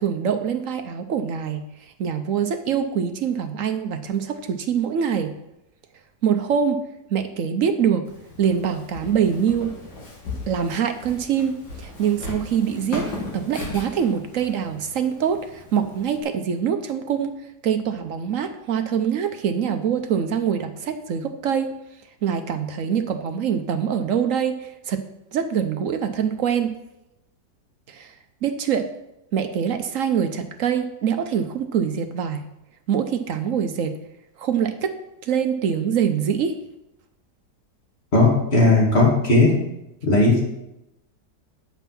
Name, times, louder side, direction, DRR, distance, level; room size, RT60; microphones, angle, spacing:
voice 1, 0.0-1.6 2.0-5.3 6.2-6.8 7.1-8.1 8.4-9.7 10.5-17.4 17.6-21.7 22.2-25.0 25.3-26.8 27.9-28.1 28.4-28.9 29.3-32.4 32.9-34.0 34.4-35.0 35.2-36.6, right 7 dB, 65° right, 8 dB, 0.8 m, -24 dB
Walk footsteps, 8.0-16.2, left 2 dB, 85° left, 2.6 m, -37 dB
voice 2, 38.1-39.5 40.0-40.4, left 2 dB, 35° left, -3 dB, 2.6 m, -16 dB
9.2 x 5.5 x 5.9 m, 0.88 s
omnidirectional pair, 1.9 m